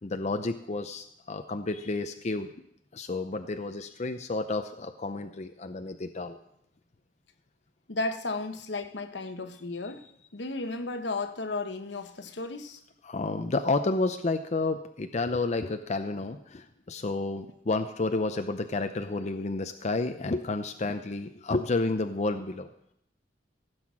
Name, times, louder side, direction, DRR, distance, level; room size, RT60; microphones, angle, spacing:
voice 1, 0.0-2.5 2.9-6.4 13.0-22.7, left 3 dB, 40° left, 7 dB, 0.6 m, -30 dB
voice 2, 7.9-10.0 10.3-12.8, left 3 dB, 70° left, 8 dB, 1.1 m, -34 dB
15.5 x 7.9 x 6.1 m, 0.75 s
head